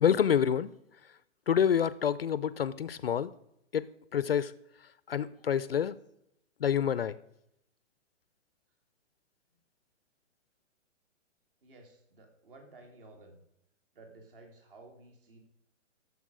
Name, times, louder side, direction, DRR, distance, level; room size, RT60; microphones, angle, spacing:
voice 1, 0.0-0.7 1.0-1.1 1.5-3.3 3.7-4.5 4.8-6.0 6.6-7.2, left 8 dB, 50° left, 0.4 m, -28 dB
voice 2, 11.6-13.4 13.9-15.4, right 2 dB, 45° right, 3.1 m, -54 dB
14.0 x 7.1 x 6.2 m
hypercardioid pair, 175°, 37 cm